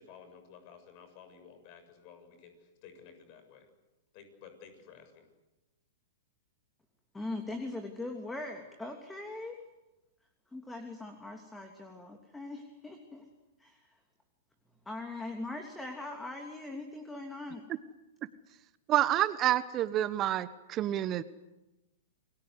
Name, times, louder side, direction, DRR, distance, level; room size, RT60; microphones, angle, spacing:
voice 1, 0.0-3.7 4.1-5.2, left 7 dB, 45° left, 8 dB, 7.2 m, -54 dB
voice 2, 7.1-9.6 10.5-13.2 13.6-13.8 14.8-17.6, left 2 dB, 10° left, 4 dB, 3.0 m, -41 dB
voice 3, 18.9-21.2, right 12 dB, 30° right, 15 dB, 1.1 m, -28 dB
29.0 x 22.5 x 8.2 m, 1.0 s
hypercardioid pair, 110°, 0 cm